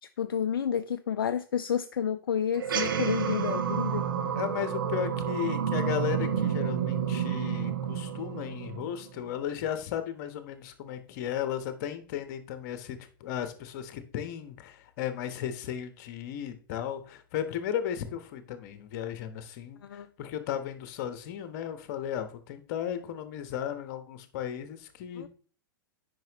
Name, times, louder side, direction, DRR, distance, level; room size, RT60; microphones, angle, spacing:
voice 1, 0.0-4.1 19.8-20.1 25.2-25.3, left 8 dB, 70° left, 0.4 m, -30 dB
sound 1, 2.6-9.3, right 8 dB, 65° right, 1.0 m, -30 dB
voice 2, 4.4-25.3, left 10 dB, 50° left, 1.1 m, -35 dB
9.1 x 5.4 x 3.0 m
figure-of-eight pair, 100°, 12 cm